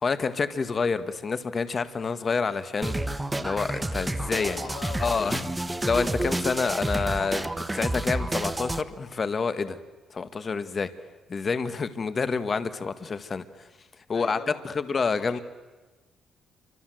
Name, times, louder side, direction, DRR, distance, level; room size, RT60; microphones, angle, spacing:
voice 1, 0.0-3.0 3.4-4.6 5.0-5.4 5.8-9.8 10.1-10.9 11.3-13.4 14.1-14.4 14.6-15.4, left 5 dB, 40° left, 12 dB, 1.6 m, -28 dB
sound 1, 2.8-8.8, right 1 dB, 10° right, 1.3 m, -30 dB
voice 2, 4.4-5.5 14.1-14.8 15.3-15.4, left 8 dB, 70° left, 9 dB, 2.3 m, -41 dB
29.0 x 25.5 x 7.8 m, 1.2 s
cardioid pair, 90°, 0 cm